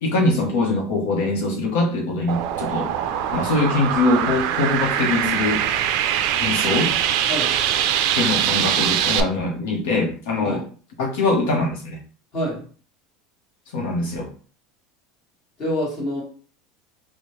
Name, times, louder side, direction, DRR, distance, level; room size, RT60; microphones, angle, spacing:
voice 1, 0.0-2.9 3.3-5.6 6.4-6.9 8.1-10.6 11.0-12.0 13.7-14.3, left 2 dB, 70° left, 0 dB, 0.8 m, -22 dB
sound 1, 2.3-9.2, right 10 dB, 50° right, 0.4 m, -22 dB
voice 2, 12.3-12.6 15.6-16.2, equal, 25° left, -4 dB, 1.4 m, -26 dB
4.6 x 2.1 x 3.0 m, 0.41 s
supercardioid pair, 170°, 0 cm